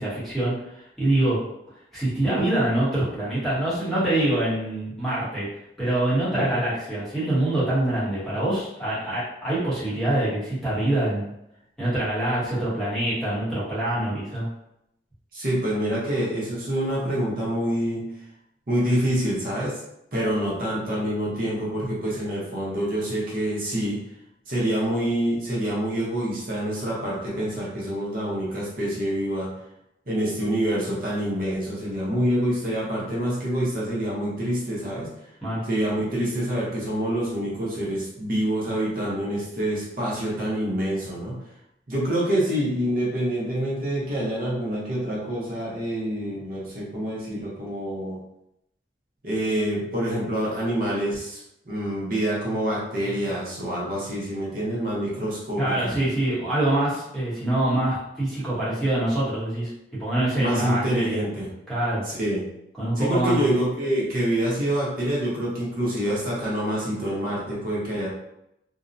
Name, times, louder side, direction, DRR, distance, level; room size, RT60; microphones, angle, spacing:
voice 1, 0.0-1.4 1.9-5.5 5.8-11.3 11.8-14.5 35.4-35.6 55.6-59.7 60.0-61.2 61.7-62.0 62.8-63.4, right 1 dB, ahead, -10 dB, 0.8 m, -25 dB
voice 2, 6.3-6.6 15.3-18.0 18.7-19.8 20.1-24.0 24.5-29.5 30.1-35.1 35.6-41.4 41.9-48.2 49.2-51.4 51.7-55.9 60.4-61.5 62.0-62.4 63.0-68.1, right 1 dB, 50° right, -6 dB, 0.8 m, -26 dB
2.5 x 2.1 x 2.5 m, 0.80 s
head